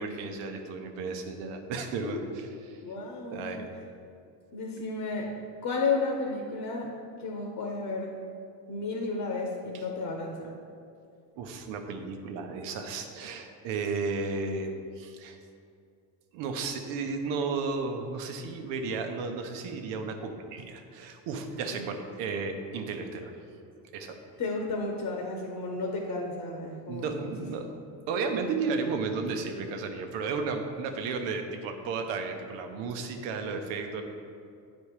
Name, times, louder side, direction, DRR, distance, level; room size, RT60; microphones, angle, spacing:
voice 1, 0.0-2.8 3.3-3.7 11.3-15.4 16.3-23.3 23.9-24.2 26.9-27.7 28.1-34.0, right 4 dB, 90° right, 5 dB, 0.9 m, -33 dB
voice 2, 2.8-3.4 4.5-5.3 5.6-6.9 7.2-8.1 8.7-10.5 21.7-21.8 24.4-27.3, left 3 dB, 50° left, 1 dB, 1.1 m, -32 dB
8.5 x 4.2 x 4.8 m, 2.4 s
cardioid pair, 115°, 43 cm